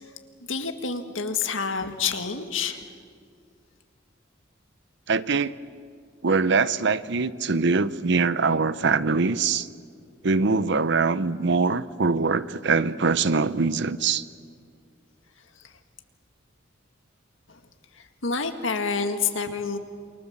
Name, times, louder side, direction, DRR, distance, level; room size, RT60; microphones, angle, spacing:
voice 1, 0.5-2.8 17.5-17.6 18.0-19.8, left 5 dB, 85° left, 6 dB, 2.0 m, -28 dB
voice 2, 5.1-5.6 6.2-9.7 10.2-14.2, right 4 dB, 65° right, 15 dB, 0.8 m, -23 dB
28.0 x 24.5 x 7.4 m, 2.2 s
head